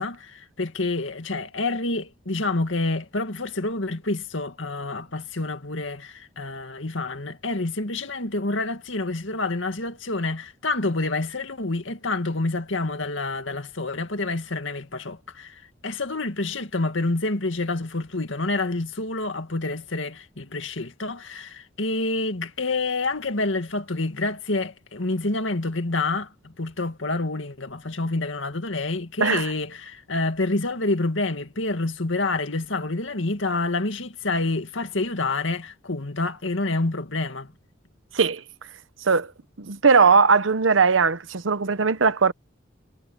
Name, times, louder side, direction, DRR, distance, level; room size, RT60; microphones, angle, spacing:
voice 1, 0.0-37.5, left 2 dB, 75° left, 2.1 m, -28 dB
voice 2, 29.2-29.5 38.1-38.4 39.0-39.3 39.6-42.3, right 5 dB, 90° right, 0.9 m, -19 dB
head